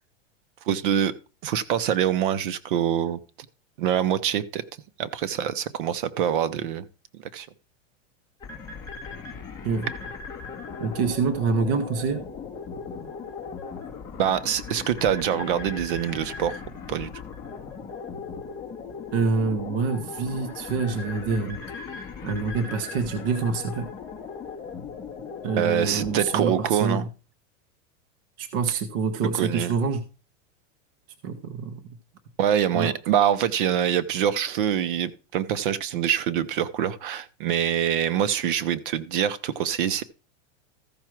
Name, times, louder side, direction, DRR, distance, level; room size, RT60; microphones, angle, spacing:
voice 1, 0.7-1.1 1.4-3.2 3.8-4.6 5.0-6.9 7.1-7.5 14.2-16.5 16.9-17.1 25.6-27.0 29.4-29.7 32.4-40.0, right 9 dB, 45° right, 0.7 m, -25 dB
sound 1, 8.4-26.4, left 5 dB, 10° left, 1.5 m, -38 dB
voice 2, 10.8-12.2 19.1-21.6 21.9-23.9 25.4-27.1 28.4-30.0 31.2-31.8 32.7-32.9, right 5 dB, 20° right, 0.4 m, -26 dB
14.0 x 5.9 x 4.5 m
supercardioid pair, 180°, 38 cm